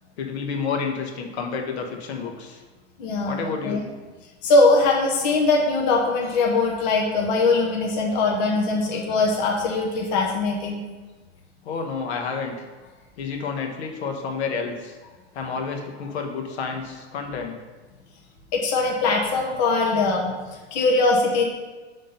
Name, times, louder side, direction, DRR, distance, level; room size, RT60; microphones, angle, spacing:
voice 1, 0.2-2.6 3.2-3.8 11.6-12.6 13.2-15.0 15.3-17.6, left 5 dB, 65° left, 3 dB, 1.1 m, -30 dB
voice 2, 3.0-3.8 4.4-10.8 18.5-21.4, left 3 dB, 40° left, -1 dB, 0.8 m, -21 dB
5.3 x 3.6 x 5.6 m, 1.3 s
supercardioid pair, 160°, 36 cm